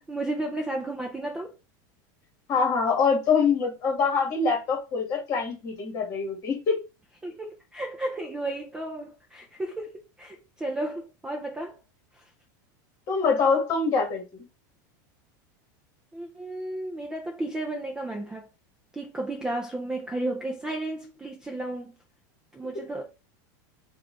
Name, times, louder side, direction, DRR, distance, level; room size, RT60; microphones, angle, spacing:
voice 1, 0.1-1.5 7.2-11.8 12.1-12.2 16.1-18.5 18.9-21.9 22.5-23.1, right 1 dB, 5° right, 0.4 m, -33 dB
voice 2, 2.5-6.8 13.1-14.2, left 5 dB, 30° left, 1.7 m, -24 dB
4.4 x 2.4 x 3.7 m
supercardioid pair, 170°, 10 cm